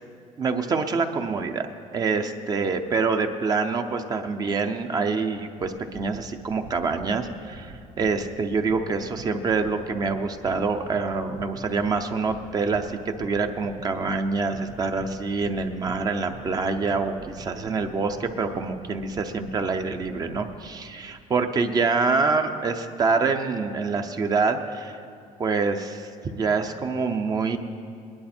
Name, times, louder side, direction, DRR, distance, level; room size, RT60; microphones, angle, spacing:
voice 1, 0.4-25.0 25.4-27.6, right 4 dB, 30° right, 7 dB, 0.7 m, -26 dB
sound 1, 5.6-20.6, right 3 dB, 80° right, 1.5 m, -45 dB
20.5 x 11.0 x 4.4 m, 2.3 s
cardioid pair, 155°, 13 cm